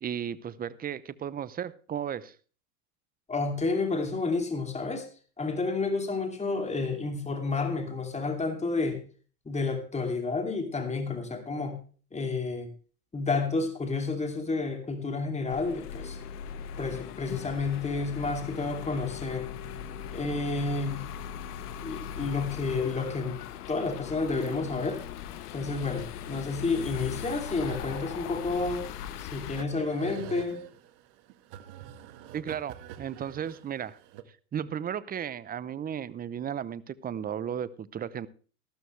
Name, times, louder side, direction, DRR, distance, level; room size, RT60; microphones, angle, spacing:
voice 1, 0.0-2.4 32.3-34.0 34.5-38.3, right 9 dB, 20° right, 19 dB, 0.6 m, -35 dB
voice 2, 3.3-5.1 5.4-9.0 9.4-11.8 12.1-12.7 13.1-16.2 16.8-19.5 20.1-21.0 21.8-23.4 23.7-25.0 25.5-28.9 29.2-30.6, left 3 dB, 15° left, 5 dB, 2.5 m, -30 dB
sound 1, 15.5-29.6, left 8 dB, 85° left, 1.1 m, -39 dB
Acoustic guitar / Strum, 17.3-23.2, left 8 dB, 70° left, 2.4 m, -51 dB
sound 2, 27.7-34.2, right 10 dB, 60° right, 1.6 m, -46 dB
13.5 x 13.0 x 3.2 m, 0.38 s
supercardioid pair, 105°, 45 cm